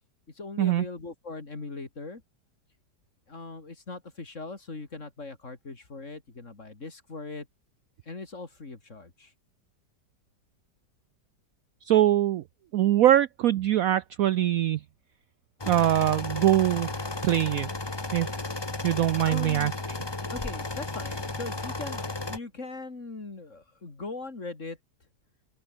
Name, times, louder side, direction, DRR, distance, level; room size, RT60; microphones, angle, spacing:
voice 1, 0.4-2.2 3.3-7.5 8.1-9.3 19.2-19.7 20.2-24.8, left 3 dB, 40° left, 3.4 m, -40 dB
voice 2, 11.8-12.4 12.7-14.8 15.7-16.9 17.2-17.7 18.1-18.3 18.8-20.0, right 12 dB, 70° right, 0.8 m, -23 dB
sound 1, 15.6-22.4, left 2 dB, 15° left, 1.3 m, -34 dB
open air
omnidirectional pair, 1.9 m